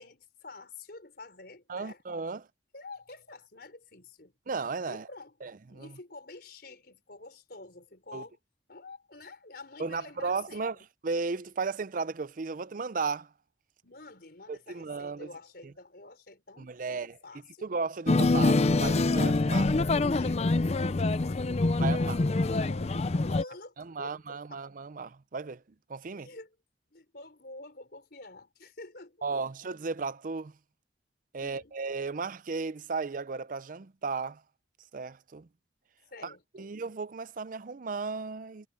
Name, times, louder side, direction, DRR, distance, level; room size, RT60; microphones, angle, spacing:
voice 1, 0.0-2.0 2.7-4.4 4.9-8.4 8.7-10.7 13.8-17.7 20.2-24.6 26.0-26.5 26.9-29.3 31.4-31.8 36.1-36.7, left 2 dB, 60° left, 4.6 m, -48 dB
voice 2, 1.7-2.5 4.5-5.1 5.4-5.9 8.1-8.2 9.8-10.8 11.0-13.3 14.5-15.3 16.6-17.1 17.6-19.7 21.8-22.2 23.9-25.6 25.9-26.3 29.2-30.5 31.3-34.4 34.9-35.5 36.2-38.7, right 4 dB, 50° right, 0.5 m, -35 dB
sound 1, 18.1-23.4, left 2 dB, 35° left, 0.5 m, -25 dB
head